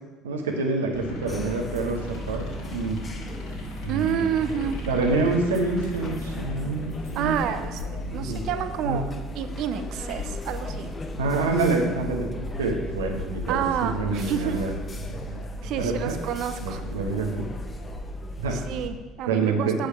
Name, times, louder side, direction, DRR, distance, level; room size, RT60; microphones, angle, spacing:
voice 1, 0.2-2.5 2.7-3.0 3.8-4.2 4.8-7.3 8.0-8.4 8.8-9.0 11.2-14.7 15.2-15.4 15.8-16.2 16.6-17.5 18.4-18.6 19.3-19.8, right 3 dB, 80° right, 2 dB, 1.1 m, -27 dB
sound 1, 0.9-19.0, left 3 dB, 65° left, 2.3 m, -40 dB
sound 2, 1.3-18.9, left 1 dB, 25° left, 0.8 m, -36 dB
voice 2, 3.9-4.8 7.1-9.0 9.3-10.9 13.5-14.6 15.6-16.8 18.5-19.9, right 8 dB, 60° right, 9 dB, 0.6 m, -29 dB
8.2 x 5.0 x 5.9 m, 1.2 s
figure-of-eight pair, 55°, 0 cm